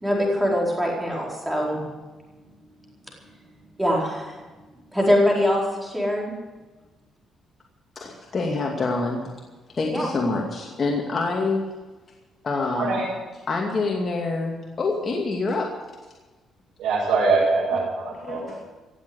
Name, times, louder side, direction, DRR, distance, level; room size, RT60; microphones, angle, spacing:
voice 1, 0.0-1.8 3.8-4.4 4.9-6.3 9.9-10.1, equal, 5° right, -3 dB, 4.5 m, -23 dB
voice 2, 8.0-9.3 9.8-11.7 12.4-13.0 13.5-15.7 18.2-18.6, left 3 dB, 40° left, 0 dB, 2.4 m, -26 dB
voice 3, 12.7-13.1 16.8-18.6, right 3 dB, 90° right, -8 dB, 6.5 m, -23 dB
17.0 x 7.8 x 9.8 m, 1.2 s
cardioid pair, 90°, 0 cm